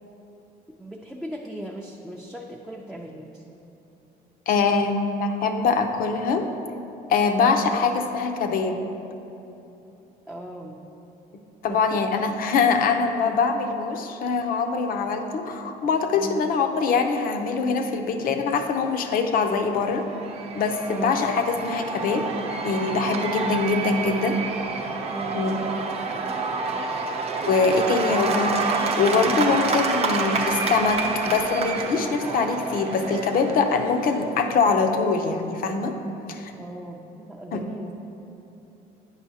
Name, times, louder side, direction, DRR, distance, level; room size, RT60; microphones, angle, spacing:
voice 1, 0.8-3.4 7.4-7.7 10.3-10.8 11.7-12.0 16.1-16.4 20.9-21.1 25.1-25.5 36.6-37.9, right 1 dB, ahead, -2 dB, 0.4 m, -38 dB
voice 2, 4.5-6.5 7.1-8.9 11.6-20.1 20.5-22.3 22.6-24.4 25.3-25.6 27.5-28.6 28.9-36.0 36.3-36.5 37.5-37.6, left 4 dB, 60° left, 6 dB, 0.6 m, -23 dB
Cheering / Applause / Crowd, 19.8-34.5, right 4 dB, 40° right, 0.7 m, -28 dB
8.9 x 5.4 x 2.8 m, 2.9 s
cardioid pair, 110°, 17 cm